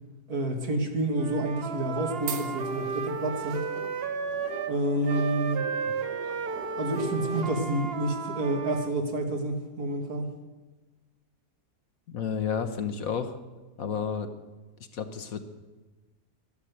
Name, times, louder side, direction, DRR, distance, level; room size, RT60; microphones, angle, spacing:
voice 1, 0.3-3.6 4.7-5.6 6.8-10.3, right 1 dB, 65° right, 3 dB, 2.3 m, -29 dB
Wind instrument woodwind instrument, 1.1-4.8 5.0-8.9, right 5 dB, 45° right, 1.0 m, -33 dB
sound 1, 1.7-7.6, right 6 dB, 90° right, 1.7 m, -42 dB
voice 2, 12.1-13.4 13.8-14.3 14.9-15.4, left 7 dB, 60° left, 8 dB, 1.4 m, -31 dB
13.0 x 12.0 x 8.0 m, 1.2 s
omnidirectional pair, 1.7 m